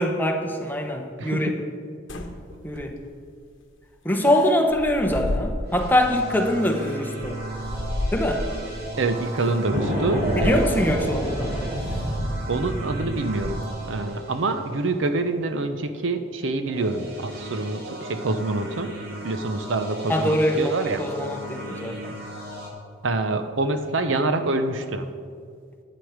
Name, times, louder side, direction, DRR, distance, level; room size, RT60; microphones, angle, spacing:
voice 1, 0.0-1.6 2.1-2.4 2.6-2.9 4.0-7.4 8.1-8.5 10.4-11.5 20.1-22.2, left 1 dB, 10° left, 3 dB, 0.9 m, -23 dB
voice 2, 1.2-1.5 9.0-10.6 12.5-18.9 19.2-21.0 23.0-25.1, right 2 dB, 70° right, 8 dB, 0.7 m, -26 dB
sound 1, 2.1-3.3 4.1-6.1 6.5-8.7 9.4-9.5 10.1-11.3 11.8-12.1 12.6-13.9, left 1 dB, 70° left, 1.0 m, -33 dB
sound 2, 5.6-15.2 16.7-22.7, right 2 dB, 50° right, 1.8 m, -36 dB
sound 3, 9.7-13.4, equal, 30° right, 3.3 m, -28 dB
11.0 x 8.9 x 5.0 m, 2.1 s
head